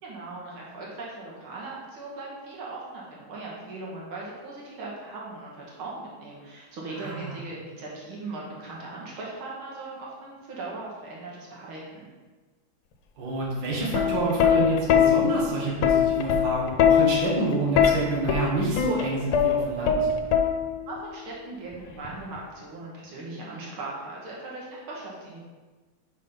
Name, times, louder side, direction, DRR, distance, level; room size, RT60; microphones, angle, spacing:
voice 1, 0.0-12.1 20.9-25.4, right 2 dB, 80° right, -4 dB, 2.2 m, -39 dB
voice 2, 7.0-7.3 13.2-20.1, right 2 dB, 65° right, -4 dB, 2.0 m, -28 dB
Plucked string instrument, 13.7-21.0 22.0-22.4, left 8 dB, 85° left, 1.6 m, -22 dB
5.3 x 5.3 x 5.5 m, 1.3 s
omnidirectional pair, 2.3 m